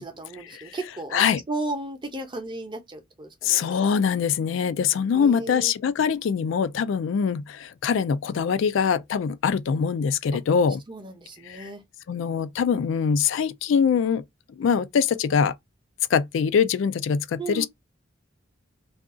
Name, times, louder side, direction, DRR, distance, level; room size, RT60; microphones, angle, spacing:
voice 1, 0.0-3.6 5.1-5.7 10.3-10.4 10.9-11.8 17.4-17.7, right 2 dB, 25° right, 0.7 m, -35 dB
voice 2, 3.4-10.8 11.5-11.7 12.1-14.2 14.6-15.5 16.1-17.7, left 6 dB, 70° left, 0.3 m, -23 dB
2.5 x 2.3 x 3.6 m
head